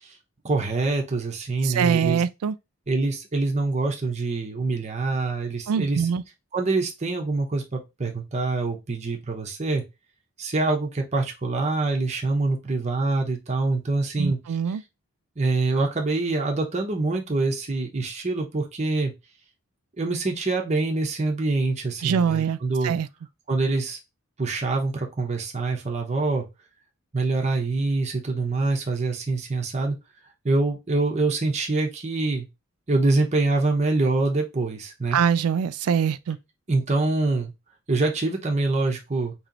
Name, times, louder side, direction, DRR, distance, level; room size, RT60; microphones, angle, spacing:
voice 1, 0.4-2.2 2.9-6.1 6.5-9.8 10.4-14.4 14.7-14.8 15.4-19.1 20.0-23.0 23.5-24.0 24.4-26.5 27.1-29.9 30.4-32.5 32.9-35.2 36.7-37.5 37.9-39.3, right 3 dB, 30° right, 0.8 m, -25 dB
voice 2, 1.6-2.6 5.7-6.2 14.2-14.8 22.0-22.6 22.8-23.1 35.1-36.4, right 7 dB, 80° right, 0.3 m, -23 dB
3.0 x 3.0 x 3.7 m
head